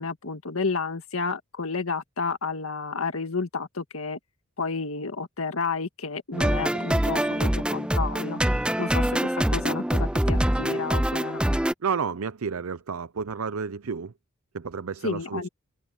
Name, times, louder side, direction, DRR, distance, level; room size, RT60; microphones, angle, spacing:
voice 1, 0.0-4.2 4.6-11.5 15.0-15.5, left 4 dB, 75° left, 1.8 m, -31 dB
sound 1, 6.3-11.7, right 1 dB, 5° right, 0.5 m, -24 dB
voice 2, 6.7-7.5 11.8-14.1 14.5-15.5, right 5 dB, 80° right, 0.6 m, -32 dB
head